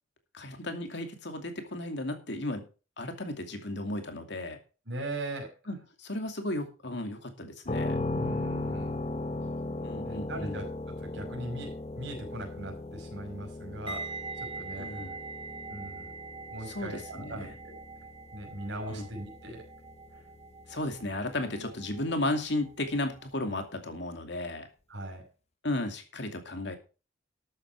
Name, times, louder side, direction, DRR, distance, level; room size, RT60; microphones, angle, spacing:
voice 1, 0.3-2.7 3.0-4.6 5.7-8.0 9.8-10.6 14.8-15.2 16.7-17.5 18.9-19.1 20.7-24.7 25.6-26.8, left 1 dB, 60° left, 6 dB, 2.6 m, -34 dB
voice 2, 4.9-5.5 8.1-8.9 10.0-14.9 15.7-16.1 16.5-17.8 18.3-19.6 21.5-21.7 24.9-25.2, right 1 dB, 60° right, 2 dB, 5.6 m, -40 dB
sound 1, 7.7-21.4, left 2 dB, 30° left, 0.8 m, -38 dB
sound 2, 13.9-22.8 23.1-23.4, right 4 dB, 25° right, 4.2 m, -44 dB
13.0 x 8.8 x 4.7 m, 0.34 s
head